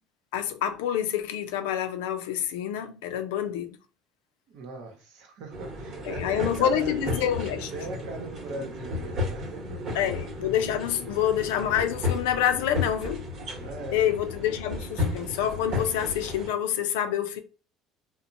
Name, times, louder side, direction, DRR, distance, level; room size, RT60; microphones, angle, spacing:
voice 1, 0.3-3.8 6.0-7.7 9.9-13.3 13.9-17.4, left 10 dB, 85° left, 0.4 m, -27 dB
voice 2, 4.5-6.9 7.7-10.1 11.1-11.2 13.6-14.1, right 2 dB, 75° right, 0.8 m, -40 dB
sound 1, 5.5-16.5, left 2 dB, 50° right, 1.0 m, -33 dB
2.9 x 2.1 x 2.5 m
supercardioid pair, 90°, 0 cm